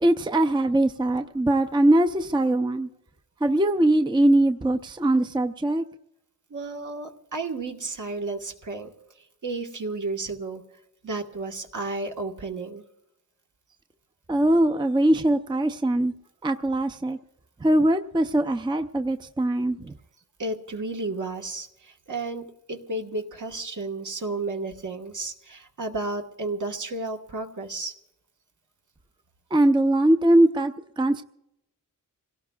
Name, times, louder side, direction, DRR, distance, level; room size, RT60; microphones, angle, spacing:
voice 1, 0.0-2.9 3.4-5.8 14.3-16.1 16.4-17.2 17.6-19.9 29.5-31.2, right 1 dB, 15° right, 7 dB, 0.5 m, -21 dB
voice 2, 6.5-8.9 9.4-10.6 11.0-12.8 20.4-27.9, right 2 dB, 60° right, 3 dB, 1.5 m, -32 dB
27.5 x 17.5 x 2.3 m, 0.86 s
wide cardioid pair, 120°, 35 cm